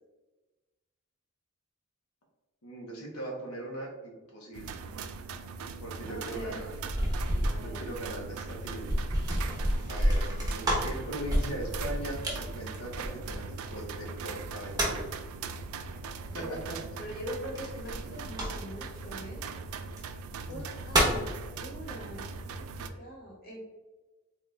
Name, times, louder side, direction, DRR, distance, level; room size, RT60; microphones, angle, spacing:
voice 1, 2.6-4.8 5.8-6.7 7.3-9.1 9.9-15.0 16.3-16.8 20.5-20.6, right 1 dB, 85° left, -1 dB, 0.8 m, -40 dB
sound 1, 4.5-22.9, right 4 dB, 80° right, 0.3 m, -40 dB
voice 2, 6.1-6.7 7.5-7.8 16.3-16.6 17.0-19.5 20.5-21.3 21.6-22.2 22.6-23.6, right 1 dB, 45° left, -3 dB, 1.0 m, -42 dB
sound 2, 6.3-13.7 14.4-15.2 17.6-18.9 19.8-20.0 20.5-21.3, right 1 dB, 15° right, 0.8 m, -30 dB
3.8 x 2.3 x 3.2 m, 1.2 s
head